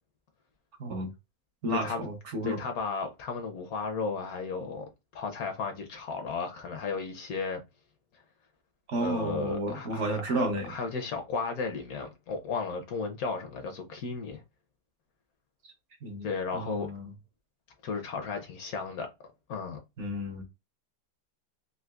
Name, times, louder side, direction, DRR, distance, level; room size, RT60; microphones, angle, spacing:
voice 1, 0.8-1.1 1.6-2.6 8.9-10.8 15.6-15.7 16.0-16.3 16.5-17.1 20.0-20.4, right 1 dB, 60° right, 0.8 m, -32 dB
voice 2, 1.7-2.0 2.4-7.6 9.0-14.4 16.2-16.9 17.8-19.1 19.5-19.8, left 4 dB, 70° left, 0.9 m, -34 dB
3.7 x 2.6 x 2.3 m
omnidirectional pair, 1.8 m